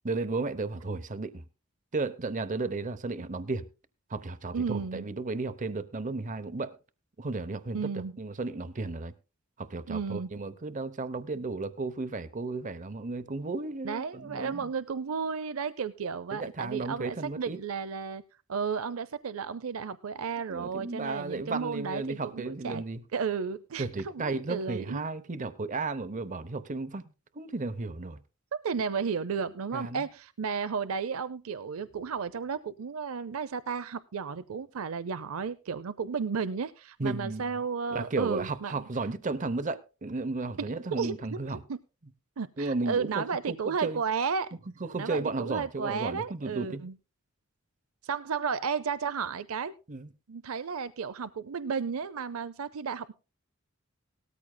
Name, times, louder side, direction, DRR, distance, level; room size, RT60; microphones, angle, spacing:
voice 1, 0.0-1.4 1.9-3.7 4.1-6.8 7.2-9.1 9.6-14.7 16.3-17.6 20.5-23.0 23.8-28.2 29.7-30.1 37.0-37.4 37.9-41.6 42.6-44.0 44.8-46.8 49.9-50.1, right 3 dB, 35° right, 0.7 m, -34 dB
voice 2, 4.5-5.1 7.7-8.1 9.9-10.3 13.8-18.2 18.5-22.8 23.1-25.1 28.6-38.8 40.6-41.4 41.7-41.8 42.4-44.6 44.9-46.9 48.0-49.7 50.3-53.1, right 6 dB, 80° right, 0.5 m, -33 dB
18.0 x 13.5 x 2.2 m
head